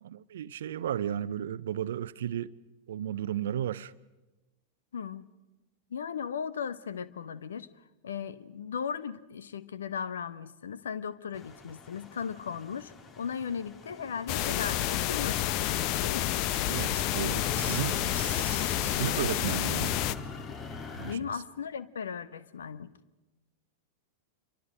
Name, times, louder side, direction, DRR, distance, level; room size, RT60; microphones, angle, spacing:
voice 1, 0.0-2.5 2.9-3.9 16.7-20.0 21.0-21.3, right 10 dB, 60° right, 0.6 m, -34 dB
voice 2, 4.9-5.3 5.9-7.7 8.0-16.4 20.8-22.9, left 7 dB, 65° left, 1.0 m, -37 dB
sound 1, 11.3-21.2, left 4 dB, 25° left, 1.7 m, -43 dB
sound 2, 14.3-20.2, left 13 dB, 40° left, 0.8 m, -29 dB
28.0 x 24.0 x 5.1 m
figure-of-eight pair, 90°, 0 cm